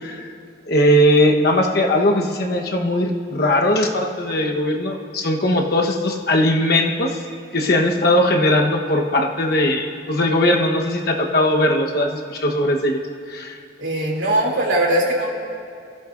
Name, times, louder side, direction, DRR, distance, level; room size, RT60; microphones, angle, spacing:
voice 1, 0.6-7.2 7.5-13.0 13.3-13.5, left 1 dB, 55° left, 1 dB, 1.1 m, -19 dB
voice 2, 13.8-15.3, right 1 dB, 80° right, -2 dB, 2.9 m, -20 dB
22.5 x 14.5 x 2.6 m, 2.3 s
head